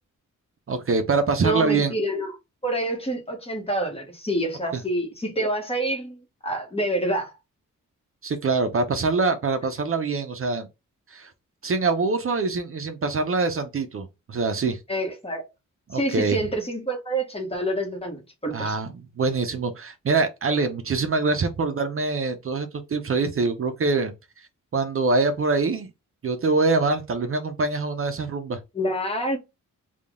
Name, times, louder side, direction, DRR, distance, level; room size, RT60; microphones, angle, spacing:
voice 1, 0.7-1.9 8.2-10.7 11.1-11.3 11.6-14.8 15.9-16.4 18.5-24.1 24.7-25.9 26.2-28.6, right 3 dB, 45° right, 0.5 m, -24 dB
voice 2, 1.4-2.4 2.6-7.3 14.9-15.4 15.9-18.8 28.7-29.4, right 1 dB, 20° left, 1.0 m, -27 dB
3.6 x 2.2 x 3.5 m
wide cardioid pair, 130°, 32 cm